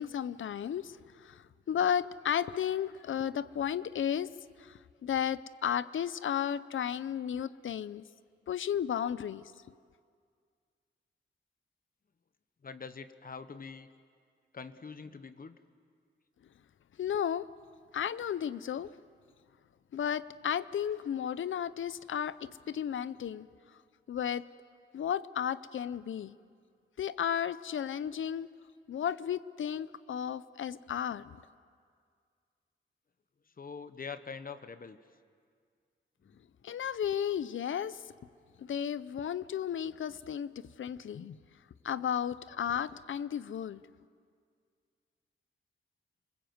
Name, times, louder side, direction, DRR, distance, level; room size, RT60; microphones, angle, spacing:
voice 1, 0.0-4.3 4.6-8.0 8.5-9.5 17.0-17.5 17.9-18.9 19.9-23.5 24.1-24.5 24.9-26.4 27.0-28.5 28.9-31.4 36.6-38.0 38.6-41.4 41.8-43.8, left 9 dB, 85° left, 17 dB, 0.6 m, -34 dB
voice 2, 12.6-13.9 14.5-15.6 33.6-35.0 36.2-36.4, left 5 dB, 50° left, 11 dB, 1.0 m, -44 dB
29.0 x 21.0 x 7.9 m, 2.1 s
wide cardioid pair, 105°, 20 cm